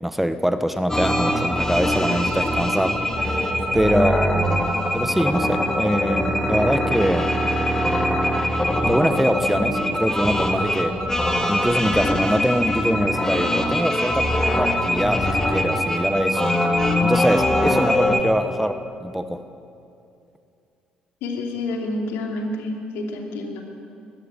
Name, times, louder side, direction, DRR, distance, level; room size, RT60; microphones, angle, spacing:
voice 1, 0.0-7.3 8.8-11.0 11.5-16.5 17.0-19.4, equal, 5° right, 10 dB, 1.1 m, -24 dB
sound 1, 0.9-18.2, left 1 dB, 15° left, 2.6 m, -22 dB
voice 2, 3.8-4.1 21.2-23.6, left 2 dB, 70° left, 1 dB, 2.9 m, -28 dB
18.5 x 15.0 x 9.8 m, 2.6 s
hypercardioid pair, 50°, 4 cm